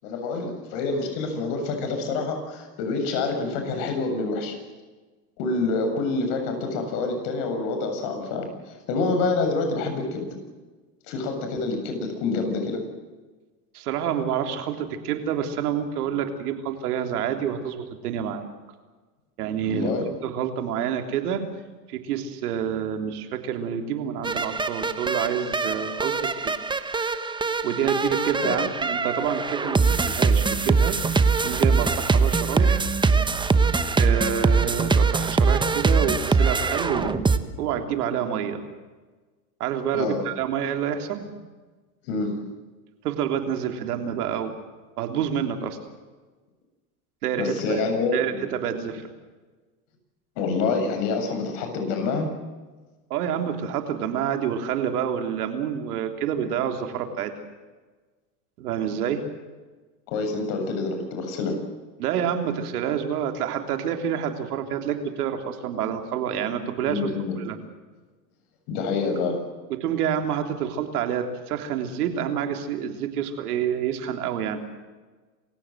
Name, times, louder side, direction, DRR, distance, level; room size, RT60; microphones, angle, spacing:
voice 1, 0.0-4.5 5.4-8.5 8.9-10.3 11.1-12.8 19.6-20.1 28.4-28.6 39.9-40.2 42.1-42.4 47.4-48.4 50.4-52.3 60.1-61.6 66.9-67.4 68.7-69.4, left 3 dB, 60° left, 5 dB, 7.5 m, -27 dB
voice 2, 13.7-18.4 19.4-19.9 20.2-21.4 21.9-26.5 27.6-31.0 31.4-32.8 34.0-37.3 37.6-38.6 39.6-41.3 43.0-44.5 45.0-45.8 47.2-47.8 48.1-49.1 53.1-57.3 58.6-59.2 62.0-67.1 67.4-67.6 69.8-74.6, right 8 dB, 75° right, 6 dB, 3.5 m, -28 dB
sound 1, 24.2-37.4, right 4 dB, 10° right, 1.1 m, -22 dB
27.5 x 16.0 x 7.9 m, 1.3 s
hypercardioid pair, 110°, 45 cm